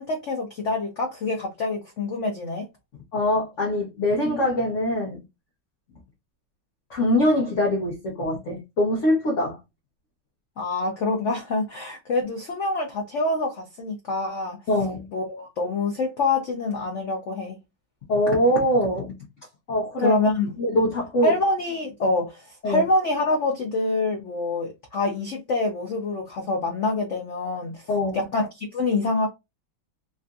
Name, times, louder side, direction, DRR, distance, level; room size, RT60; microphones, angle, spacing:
voice 1, 0.0-2.7 10.6-14.6 15.1-17.6 20.0-20.5 21.2-27.9 28.1-29.3, left 2 dB, 85° left, 0.6 m, -26 dB
voice 2, 3.1-5.2 6.9-9.6 14.7-15.1 18.1-19.1 19.7-20.2 20.6-21.3 22.6-22.8 27.9-28.2, left 1 dB, 55° left, 0.9 m, -23 dB
3.7 x 2.5 x 2.2 m
omnidirectional pair, 2.1 m